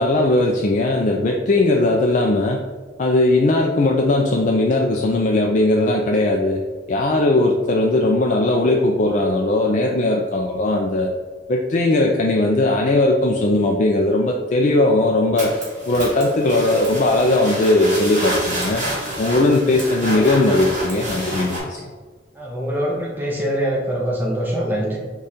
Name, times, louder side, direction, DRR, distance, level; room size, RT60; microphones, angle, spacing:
voice 1, 0.0-2.6 3.0-6.6 6.9-11.1 11.5-15.5 15.9-18.8 19.2-21.8, left 2 dB, 40° left, 0 dB, 0.3 m, -18 dB
sound 1, 15.4-21.6, right 1 dB, 40° right, 1.4 m, -28 dB
voice 2, 22.3-25.0, equal, 10° right, -3 dB, 0.6 m, -23 dB
4.9 x 2.4 x 4.1 m, 1.4 s
head